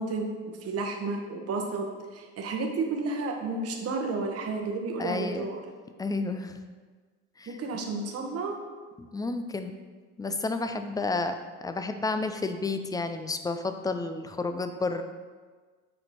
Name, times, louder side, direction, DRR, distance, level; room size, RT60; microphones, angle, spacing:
voice 1, 0.0-5.6 7.5-8.6, right 3 dB, 40° right, 2 dB, 1.1 m, -32 dB
voice 2, 5.0-5.4 6.0-6.6 7.4-7.6 9.0-9.8 10.2-15.0, left 3 dB, 10° left, 8 dB, 0.4 m, -31 dB
6.6 x 4.3 x 4.2 m, 1.5 s
hypercardioid pair, 80°, 37 cm